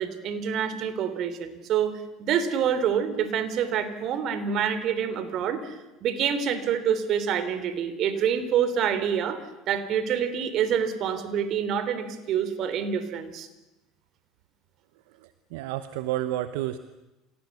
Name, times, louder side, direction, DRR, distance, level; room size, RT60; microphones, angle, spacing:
voice 1, 0.0-5.7 6.0-9.4 9.7-13.5, right 8 dB, 55° right, 12 dB, 3.3 m, -27 dB
voice 2, 15.2-16.8, right 14 dB, 75° right, 12 dB, 1.0 m, -31 dB
27.0 x 17.5 x 8.4 m, 1.0 s
hypercardioid pair, 85°, 0 cm